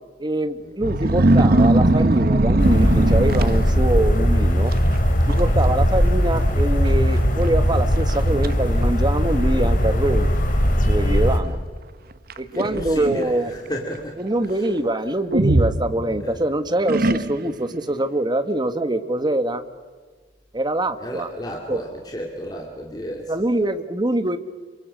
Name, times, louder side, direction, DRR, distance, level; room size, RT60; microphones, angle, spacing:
voice 1, 0.2-4.7 5.3-10.3 10.8-11.6 12.4-13.5 14.1-19.6 20.5-21.3 21.7-21.8 23.3-24.4, right 1 dB, 25° right, 10 dB, 1.5 m, -24 dB
sound 1, 0.8-4.1 4.7-5.0 5.3-5.7 6.0-6.1 6.9-7.0 7.5-7.6 8.1-8.5 9.3-9.4 12.3-13.3 15.3-16.4 16.9-17.6, right 1 dB, 55° right, 1.0 m, -19 dB
sound 2, 2.6-11.4, equal, 45° left, 3.4 m, -19 dB
voice 2, 12.5-14.5 16.2-16.4 21.0-23.3, equal, 20° left, 0 dB, 2.5 m, -33 dB
28.0 x 24.0 x 6.4 m, 1.4 s
head